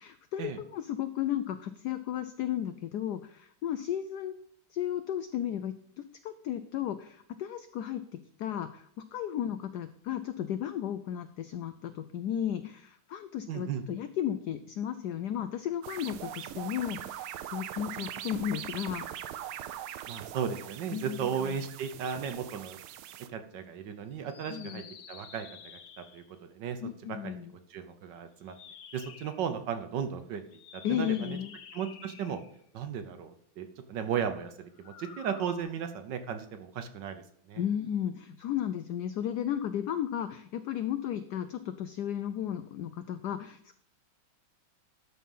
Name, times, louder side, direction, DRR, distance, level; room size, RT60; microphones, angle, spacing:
voice 1, 0.0-4.3 4.7-5.7 6.2-19.1 20.9-21.5 24.5-24.9 26.8-27.5 30.8-31.5 37.6-43.8, left 10 dB, 80° left, 11 dB, 0.9 m, -34 dB
voice 2, 13.5-13.8 20.1-22.8 23.3-26.2 26.5-26.8 27.1-28.5 28.9-30.4 30.7-31.4 31.7-32.4 32.7-37.2 37.5-37.6, right 7 dB, 65° right, 8 dB, 1.4 m, -35 dB
sound 1, 15.8-23.3, right 11 dB, 85° right, 1.5 m, -41 dB
sound 2, 24.2-26.4 28.4-29.5 30.5-32.6 34.7-35.6, left 7 dB, 60° left, 1.3 m, -50 dB
12.5 x 4.2 x 5.4 m, 0.66 s
omnidirectional pair, 2.3 m